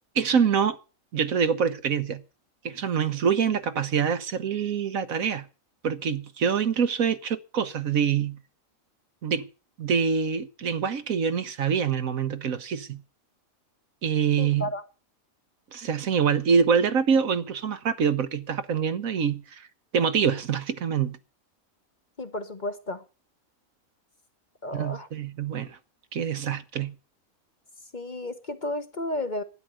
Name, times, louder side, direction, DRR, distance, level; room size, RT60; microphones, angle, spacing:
voice 1, 0.1-0.8 1.1-2.2 2.6-5.5 5.8-8.4 9.2-9.5 9.8-13.0 14.0-14.7 15.7-19.7 19.9-21.2 24.7-25.8 26.1-26.9, right 6 dB, 75° right, 1.5 m, -25 dB
voice 2, 14.4-14.8 22.2-23.0 24.6-25.1 27.9-29.4, left 1 dB, 35° left, 1.2 m, -32 dB
12.0 x 10.0 x 7.8 m
omnidirectional pair, 1.4 m